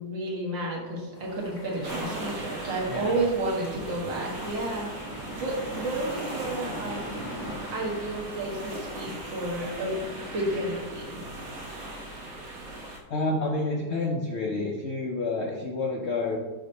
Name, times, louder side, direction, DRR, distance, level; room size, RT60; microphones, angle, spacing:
voice 1, 0.0-7.3 7.7-10.0 10.3-11.2, right 2 dB, 85° right, -3 dB, 2.2 m, -31 dB
sound 1, 1.1-10.7, equal, 60° left, 1.7 m, -42 dB
sound 2, 1.8-13.0, right 1 dB, 55° right, 1.4 m, -39 dB
voice 2, 2.9-3.3 13.1-16.4, left 2 dB, 80° left, 1 dB, 0.6 m, -29 dB
7.2 x 2.9 x 5.3 m, 1.2 s
omnidirectional pair, 2.0 m